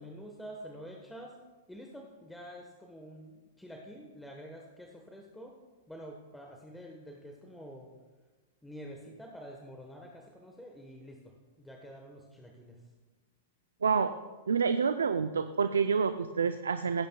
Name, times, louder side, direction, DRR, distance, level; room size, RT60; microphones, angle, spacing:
voice 1, 0.0-1.3 1.7-5.5 5.9-7.9 8.6-12.8, equal, 5° left, 0 dB, 1.2 m, -48 dB
voice 2, 14.5-17.1, right 6 dB, 85° right, 9 dB, 0.4 m, -28 dB
16.5 x 9.0 x 2.3 m, 1.3 s
hypercardioid pair, 115°, 0 cm